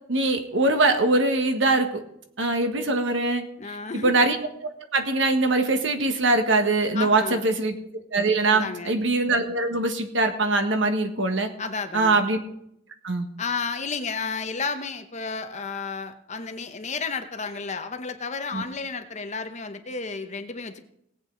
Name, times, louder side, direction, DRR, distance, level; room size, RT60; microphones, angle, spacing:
voice 1, 0.1-2.0 2.4-3.4 3.9-4.4 4.6-7.7 8.1-11.5 11.9-12.4 13.0-13.3 18.5-18.6, right 2 dB, 70° right, 6 dB, 1.4 m, -22 dB
voice 2, 3.6-4.1 6.9-7.5 8.5-9.0 11.6-12.2 13.4-20.8, left 4 dB, 35° left, 8 dB, 0.9 m, -32 dB
18.5 x 8.4 x 3.9 m, 0.74 s
head